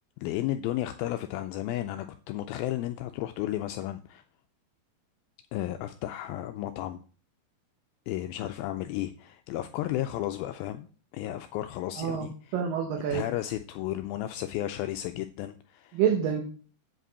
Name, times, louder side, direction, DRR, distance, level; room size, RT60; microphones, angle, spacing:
voice 1, 0.2-4.2 5.5-7.0 8.1-10.9 11.1-12.3 13.1-16.0, left 13 dB, 80° left, 7 dB, 2.3 m, -33 dB
voice 2, 12.0-13.3 15.9-16.4, right 8 dB, 70° right, 2 dB, 2.5 m, -27 dB
8.0 x 5.1 x 6.7 m, 0.40 s
omnidirectional pair, 4.4 m